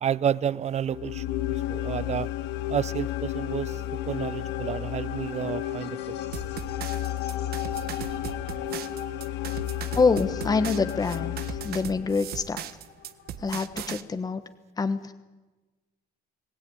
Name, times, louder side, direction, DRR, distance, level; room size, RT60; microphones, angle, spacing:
voice 1, 0.0-1.4 1.7-2.3 2.7-3.8 4.1-6.2, right 9 dB, 40° right, 0.7 m, -30 dB
sound 1, 0.9-12.2, left 13 dB, 90° left, 1.1 m, -32 dB
sound 2, 2.8-14.1, left 9 dB, 75° left, 2.3 m, -44 dB
sound 3, 6.3-14.0, right 10 dB, 65° right, 1.3 m, -38 dB
voice 2, 9.9-12.6 13.4-14.4 14.8-15.1, left 4 dB, 20° left, 1.2 m, -26 dB
22.5 x 18.0 x 9.5 m
cardioid pair, 110°, 17 cm